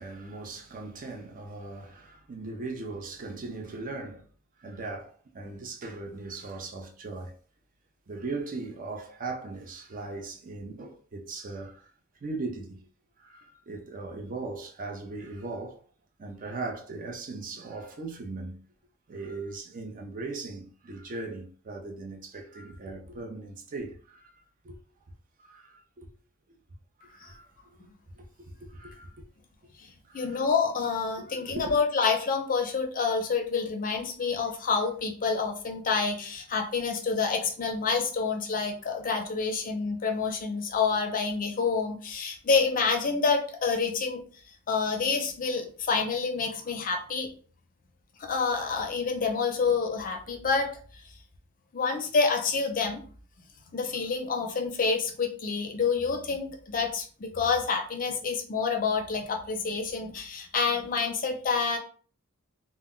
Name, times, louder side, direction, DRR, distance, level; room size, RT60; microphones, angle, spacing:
voice 1, 0.0-4.3 4.6-7.4 8.1-11.9 12.2-12.9 13.2-15.8 16.2-18.6 19.1-24.3 24.6-24.8 25.4-26.1 27.0-27.5 27.8-27.9 28.1-29.3 29.6-29.7 30.0-30.4 31.2-31.7, right 3 dB, 40° right, 0.5 m, -39 dB
voice 2, 30.1-44.2 44.7-47.3 48.2-50.7 51.7-53.0 53.7-61.8, left 5 dB, 40° left, 0.5 m, -28 dB
2.1 x 2.1 x 3.6 m
head